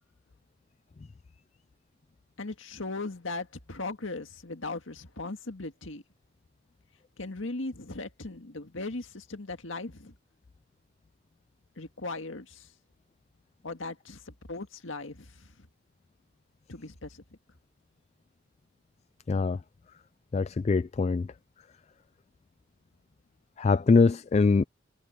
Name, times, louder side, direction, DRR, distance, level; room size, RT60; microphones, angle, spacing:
voice 1, 2.4-6.0 7.2-10.1 11.8-12.7 13.6-15.7 16.7-17.2, left 3 dB, 85° left, 1.9 m, -38 dB
voice 2, 19.3-19.6 20.3-21.3 23.6-24.6, left 4 dB, 35° left, 0.3 m, -23 dB
head